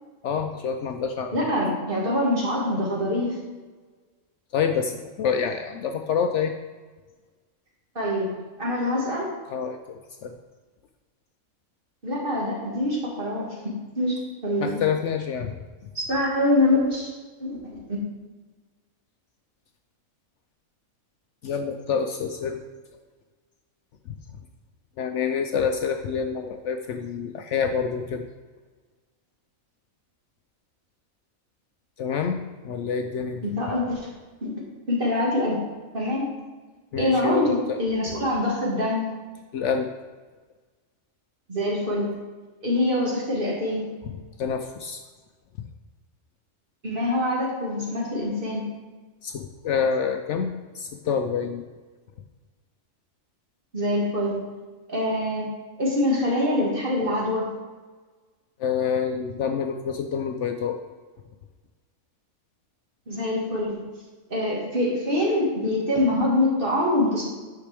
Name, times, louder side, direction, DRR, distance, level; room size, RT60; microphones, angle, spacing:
voice 1, 0.2-1.5 4.5-6.5 9.5-10.3 14.6-15.6 21.4-22.6 25.0-28.3 32.0-32.4 32.6-33.4 36.9-37.8 39.5-39.9 44.4-45.0 49.2-51.6 58.6-60.8, left 6 dB, 65° left, 5 dB, 0.8 m, -27 dB
voice 2, 1.3-3.4 8.0-8.3 8.6-9.3 12.0-14.2 14.4-14.8 16.0-17.1 17.4-18.0 33.4-34.0 34.4-34.5 34.9-35.6 35.9-36.3 37.0-39.1 41.5-42.1 42.6-43.8 46.8-48.6 53.7-54.4 54.9-55.5 55.8-57.5 63.1-63.8 64.3-67.2, left 1 dB, 40° right, -4 dB, 2.0 m, -24 dB
9.9 x 5.8 x 3.4 m, 1.3 s
omnidirectional pair, 1.4 m